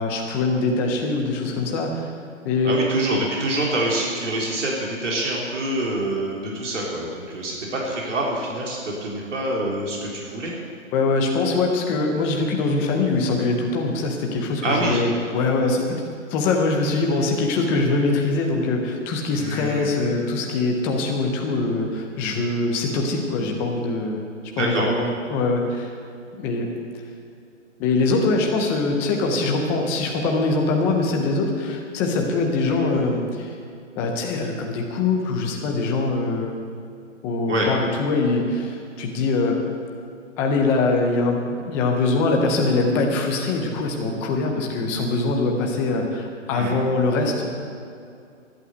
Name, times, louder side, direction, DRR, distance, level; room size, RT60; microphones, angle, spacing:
voice 1, 0.0-2.1 2.4-2.8 10.9-16.0 16.3-24.3 24.6-25.9 26.4-26.7 27.8-33.5 34.0-36.5 37.2-39.6 40.4-47.5, left 3 dB, 5° left, 1 dB, 0.5 m, -23 dB
voice 2, 2.6-10.5 14.6-15.0 19.4-19.9 24.6-24.9 32.7-32.8 37.5-37.7 46.5-46.7, right 1 dB, 70° right, -3 dB, 4.0 m, -26 dB
13.0 x 11.5 x 7.9 m, 2.4 s
hypercardioid pair, 150°, 38 cm